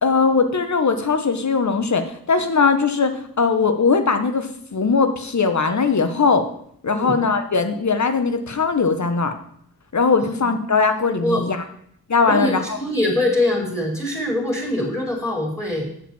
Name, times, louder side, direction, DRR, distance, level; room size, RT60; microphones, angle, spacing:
voice 1, 0.0-6.5 6.8-9.4 9.9-11.6 12.1-12.8, left 4 dB, 45° left, 8 dB, 1.4 m, -20 dB
voice 2, 12.3-15.9, left 1 dB, 5° left, -1 dB, 4.4 m, -23 dB
7.7 x 6.8 x 7.3 m, 0.66 s
supercardioid pair, 50°, 40 cm